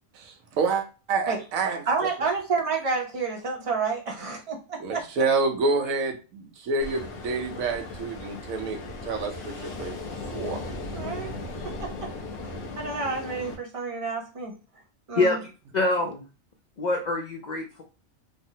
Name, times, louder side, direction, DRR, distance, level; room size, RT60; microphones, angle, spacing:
voice 1, 0.1-1.9 4.8-8.8 9.0-9.5 9.8-9.9 10.3-10.6, right 4 dB, 85° right, 4 dB, 1.1 m, -28 dB
voice 2, 1.9-5.0 10.9-11.3 11.8-12.1 12.4-14.5 15.1-15.4, right 4 dB, 40° right, 1 dB, 0.5 m, -29 dB
Ocean, 6.8-13.6, left 2 dB, 55° left, 0.9 m, -37 dB
voice 3, 15.7-16.2 16.8-17.8, left 2 dB, 70° left, 1 dB, 0.4 m, -25 dB
3.3 x 2.0 x 2.7 m, 0.32 s
omnidirectional pair, 1.4 m